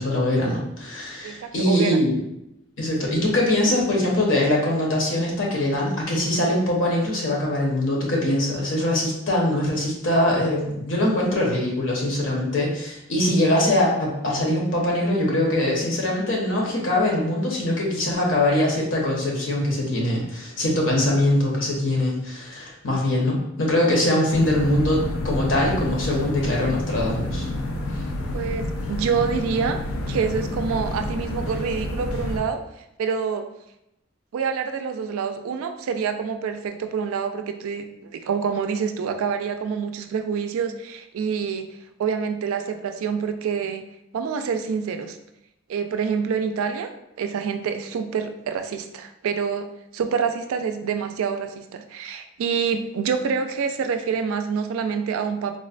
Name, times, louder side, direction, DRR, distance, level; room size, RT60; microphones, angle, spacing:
voice 1, 0.0-2.2 2.8-27.4, left 1 dB, 65° left, -2 dB, 0.8 m, -22 dB
voice 2, 1.2-2.0 28.3-33.5 34.3-41.7 42.0-43.8 44.1-45.2 45.7-49.7 49.9-55.6, right 6 dB, 80° right, 7 dB, 0.3 m, -27 dB
sound 1, 24.3-32.4, left 1 dB, 80° left, 0.4 m, -29 dB
3.7 x 2.1 x 2.4 m, 0.83 s
head